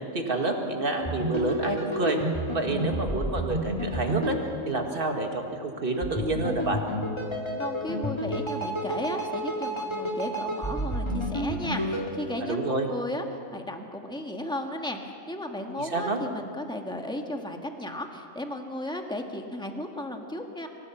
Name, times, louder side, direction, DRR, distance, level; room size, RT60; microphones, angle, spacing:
voice 1, 0.1-2.2 2.5-4.4 4.7-6.8 12.4-12.9 15.8-16.2, right 2 dB, 45° right, 3 dB, 2.1 m, -28 dB
sound 1, 1.0-5.3 6.0-12.1, equal, 20° left, 2.6 m, -31 dB
voice 2, 7.6-13.2 13.5-20.7, left 1 dB, 5° left, 3 dB, 1.5 m, -35 dB
25.0 x 16.0 x 7.2 m, 2.4 s
omnidirectional pair, 1.4 m